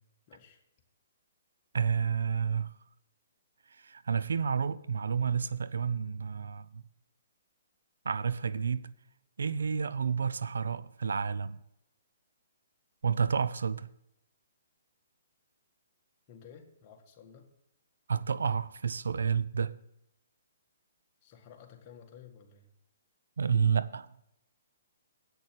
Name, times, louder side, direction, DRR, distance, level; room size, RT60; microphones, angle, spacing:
voice 1, 0.3-0.6 16.3-17.5 21.2-22.7, left 7 dB, 35° left, 1.7 m, -53 dB
voice 2, 1.7-2.7 3.8-6.8 8.1-8.9 9.4-11.6 13.0-13.9 18.1-19.7 23.4-24.1, right 6 dB, 85° right, 0.5 m, -30 dB
8.4 x 6.6 x 7.6 m
hypercardioid pair, 150°, 0 cm